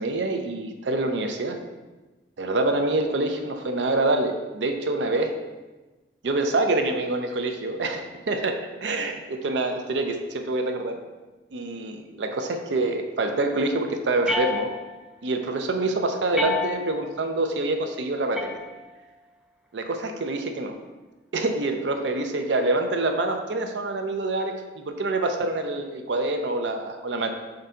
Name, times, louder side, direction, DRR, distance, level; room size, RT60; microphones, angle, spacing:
voice 1, 0.0-1.6 2.4-5.4 6.2-11.0 11.5-14.7 15.2-18.6 19.7-20.8 21.3-27.3, right 2 dB, 75° right, 5 dB, 0.5 m, -26 dB
sound 1, 14.2-15.1 16.3-17.1 18.3-19.2, left 3 dB, 5° right, 0.4 m, -30 dB
4.5 x 3.8 x 5.5 m, 1.2 s
head